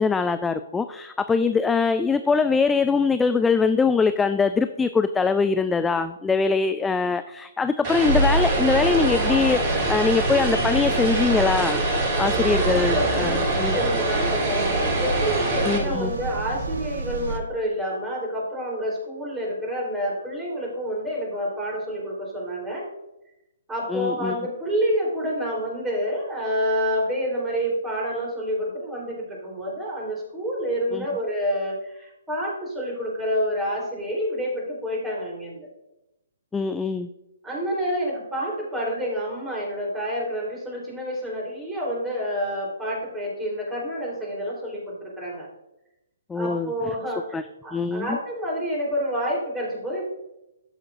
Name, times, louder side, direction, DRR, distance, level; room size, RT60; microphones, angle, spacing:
voice 1, 0.0-11.8 12.2-13.8 15.7-16.1 23.9-24.4 30.9-31.1 36.5-37.1 46.3-46.7 47.3-47.4 47.7-48.2, left 5 dB, 10° left, 11 dB, 0.3 m, -22 dB
Vehicle, 7.8-15.8, right 2 dB, 30° right, 2.7 m, -25 dB
sound 1, 8.1-17.4, right 2 dB, 60° right, 1.1 m, -28 dB
voice 2, 12.6-22.9 23.7-35.7 37.4-45.5 46.3-50.0, equal, 10° right, -3 dB, 3.6 m, -28 dB
13.0 x 7.1 x 2.5 m, 0.92 s
figure-of-eight pair, 130°, 0 cm